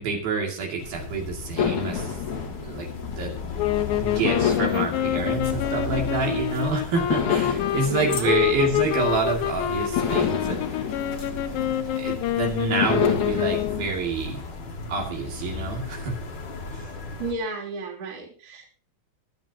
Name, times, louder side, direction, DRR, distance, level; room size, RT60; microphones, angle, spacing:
voice 1, 0.0-2.1 2.5-2.9 3.2-3.3 4.0-10.6 12.0-14.4 14.9-16.2 16.7-16.9, right 4 dB, 75° right, 0 dB, 4.3 m, -28 dB
sound 1, 0.8-17.3, left 4 dB, 40° left, 1.7 m, -36 dB
sound 2, 1.6-3.6 4.2-6.5 7.1-9.4 10.0-12.2 12.8-13.9, left 8 dB, 60° left, 3.0 m, -29 dB
sound 3, 3.6-13.9, left 12 dB, 75° left, 1.9 m, -27 dB
voice 2, 7.8-8.4 17.2-18.7, right 3 dB, 35° right, -1 dB, 3.4 m, -33 dB
23.0 x 8.7 x 2.9 m, 0.41 s
omnidirectional pair, 4.3 m